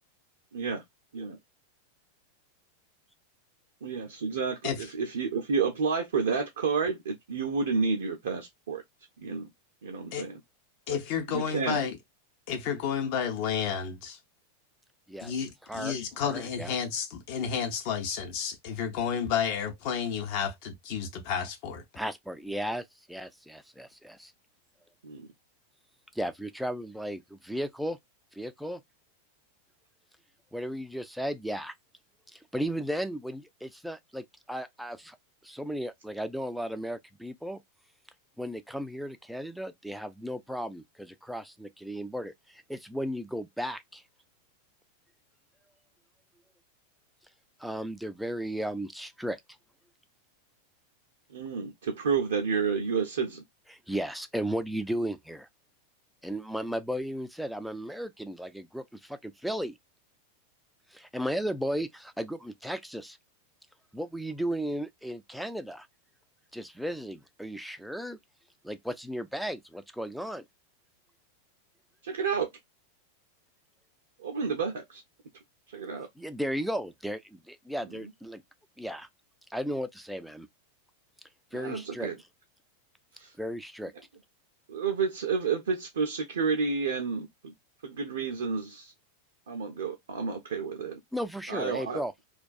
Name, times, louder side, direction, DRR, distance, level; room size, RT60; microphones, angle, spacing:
voice 1, 3.8-8.8 9.2-9.5 9.8-10.4 10.9-11.0 11.3-11.8 25.0-25.3 51.3-53.4 72.0-72.5 74.2-75.0 75.7-76.1 81.5-82.2 83.2-83.3 84.7-87.5 87.8-88.9 89.5-91.0 91.5-92.0, right 5 dB, 60° right, 0.5 m, -30 dB
voice 2, 10.9-12.0 12.5-14.2 15.2-21.8, left 7 dB, 45° left, 0.7 m, -31 dB
voice 3, 16.2-16.7 21.9-24.3 26.2-28.0 28.3-28.8 30.5-31.7 32.3-35.2 35.4-37.6 38.4-44.0 47.6-49.4 53.7-55.5 56.2-59.7 60.9-63.2 63.9-65.9 66.5-68.2 68.6-70.4 76.2-78.4 78.8-79.1 79.5-80.5 81.5-82.1 83.4-83.9 91.1-92.1, equal, ahead, 0.3 m, -35 dB
2.3 x 2.2 x 2.4 m
figure-of-eight pair, 90°, 0 cm